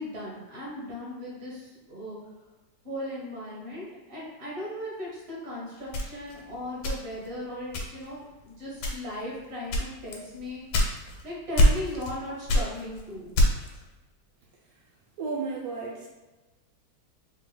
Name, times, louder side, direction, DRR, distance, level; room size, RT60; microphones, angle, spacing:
voice 1, 0.0-2.2 2.8-10.6 11.2-13.3, left 1 dB, 40° right, -5 dB, 1.3 m, -37 dB
sound 1, 5.9-7.3 7.7-8.2 8.7-9.2 9.7-11.2 11.6-12.2 12.5-13.8, left 1 dB, 80° left, 1.5 m, -24 dB
voice 2, 15.2-16.1, right 4 dB, 75° right, -3 dB, 0.8 m, -33 dB
4.1 x 3.8 x 2.2 m, 1.1 s
omnidirectional pair, 2.0 m